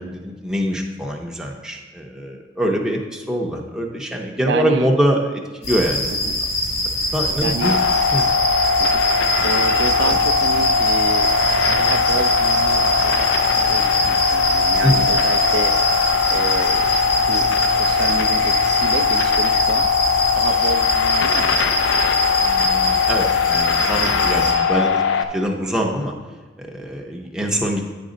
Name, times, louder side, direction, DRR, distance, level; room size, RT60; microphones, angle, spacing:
voice 1, 0.0-6.1 7.1-7.8 8.1-8.3 10.0-10.2 14.8-15.1 22.4-25.0 25.3-26.1 26.6-27.9, equal, 5° right, 0 dB, 0.6 m, -23 dB
voice 2, 4.5-4.9 6.1-6.4 7.4-7.8 8.8-9.0 9.4-11.3 11.7-15.7 16.3-17.0 17.3-19.9 20.3-22.0 27.5-27.6, right 4 dB, 65° right, 8 dB, 0.4 m, -29 dB
sound 1, 5.6-24.5, left 1 dB, 90° left, 2.1 m, -23 dB
sound 2, 7.6-25.2, left 5 dB, 75° left, 0.4 m, -20 dB
9.1 x 5.2 x 3.8 m, 1.3 s
head